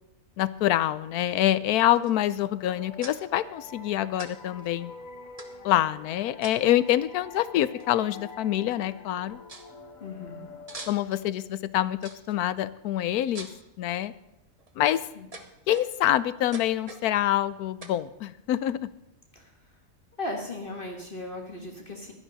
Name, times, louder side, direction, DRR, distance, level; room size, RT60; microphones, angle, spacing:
voice 1, 0.4-4.9 5.6-9.4 10.9-13.5 13.8-14.1 14.8-15.0 15.7-18.9, left 12 dB, 80° left, 16 dB, 1.1 m, -26 dB
sound 1, 2.0-2.3 3.0-3.2 4.2-4.3 4.6-4.7 5.4-5.8 6.4-6.8 7.8-7.9 8.1-8.5 8.9-9.0 9.5-9.7 10.7-11.2 12.0-12.4 13.3-13.7 14.4-14.7 15.3-16.1 16.5-17.1 17.8-18.0, right 2 dB, 25° right, 1.1 m, -43 dB
sound 2, 2.4-11.8, left 4 dB, 60° left, 1.5 m, -47 dB
voice 2, 10.0-10.5 15.1-15.3 19.3-19.5 20.2-22.1, left 2 dB, 35° left, 1 dB, 1.7 m, -37 dB
16.0 x 12.0 x 4.0 m, 0.85 s
omnidirectional pair, 1.6 m